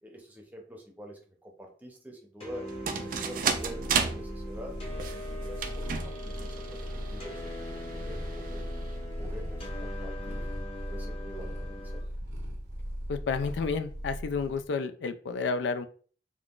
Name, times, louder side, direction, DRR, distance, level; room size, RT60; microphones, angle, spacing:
voice 1, 0.0-2.7 3.0-4.8 5.1-8.7 9.2-10.5 10.9-12.0, equal, 10° right, 0 dB, 0.6 m, -46 dB
sound 1, 2.4-12.0, left 1 dB, 35° left, 0.8 m, -42 dB
sound 2, 2.7-9.7, right 6 dB, 50° right, 0.4 m, -35 dB
Purr, 3.5-14.6, equal, 70° right, 0.8 m, -38 dB
voice 2, 13.1-15.9, left 5 dB, 85° left, 11 dB, 0.3 m, -31 dB
3.6 x 2.3 x 2.4 m, 0.44 s
head